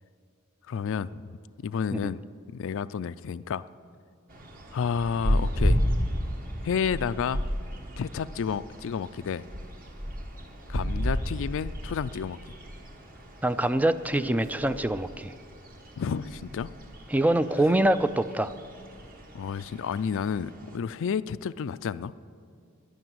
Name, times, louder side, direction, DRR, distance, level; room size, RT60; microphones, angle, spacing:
voice 1, 0.7-1.2 1.6-2.2 2.5-3.7 4.7-5.8 6.6-7.5 8.0-9.5 10.7-12.4 16.0-16.7 19.3-22.1, left 6 dB, 65° left, 16 dB, 0.4 m, -30 dB
sound 1, 4.3-20.8, equal, 45° right, 1.6 m, -33 dB
Speech, 8.8-8.9 14.1-14.8 16.0-16.3, left 1 dB, 85° right, 2.5 m, -41 dB
voice 2, 13.4-15.3 17.1-18.5, right 1 dB, 5° right, 13 dB, 0.3 m, -24 dB
12.0 x 10.5 x 9.4 m, 2.2 s
head